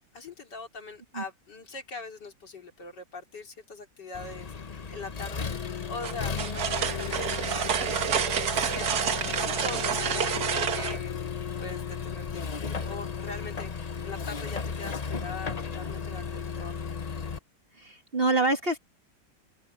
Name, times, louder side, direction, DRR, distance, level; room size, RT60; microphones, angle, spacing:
voice 1, 0.1-10.5 10.7-16.9, left 3 dB, 70° left, 3.7 m, -42 dB
Accelerating revving vroom, 4.1-17.4, left 6 dB, 40° left, 0.5 m, -35 dB
sound 1, 6.0-11.0, right 8 dB, 60° right, 1.7 m, -28 dB
voice 2, 17.8-18.8, right 2 dB, 35° right, 1.7 m, -26 dB
open air
omnidirectional pair, 2.0 m